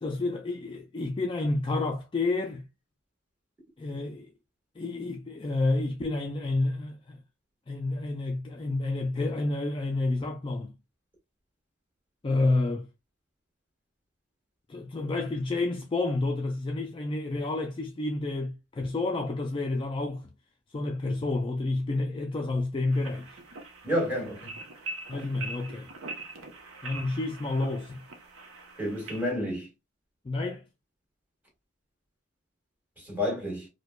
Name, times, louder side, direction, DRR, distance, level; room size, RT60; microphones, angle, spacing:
voice 1, 0.0-2.7 3.8-4.3 4.8-7.2 7.7-10.7 12.2-12.9 14.7-20.3 20.7-23.4 25.1-25.9 26.8-28.0 30.2-30.6, left 2 dB, 25° left, 0.3 m, -29 dB
sound 1, 22.9-29.3, right 2 dB, 80° right, 0.7 m, -43 dB
voice 2, 23.8-24.6 28.8-29.7 33.0-33.7, left 1 dB, 10° right, 1.5 m, -30 dB
4.6 x 2.2 x 2.2 m
head